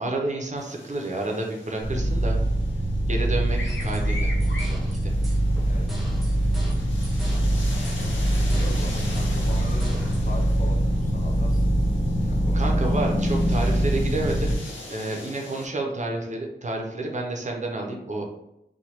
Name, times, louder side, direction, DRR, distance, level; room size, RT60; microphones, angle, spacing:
voice 1, 0.0-2.4 3.1-4.3 4.7-5.1 12.5-14.5 14.9-18.2, right 2 dB, 40° right, 0 dB, 0.5 m, -30 dB
sound 1, 0.6-15.7, left 2 dB, 85° left, 0.6 m, -42 dB
sound 2, 1.8-14.6, right 1 dB, 65° left, 1.1 m, -23 dB
sound 3, 3.7-10.2, equal, ahead, 0.7 m, -34 dB
voice 2, 5.7-6.0 7.3-7.6 8.5-11.7 12.2-13.0, left 2 dB, 45° left, 1 dB, 0.5 m, -40 dB
3.1 x 2.1 x 2.9 m, 0.88 s
wide cardioid pair, 85°, 19 cm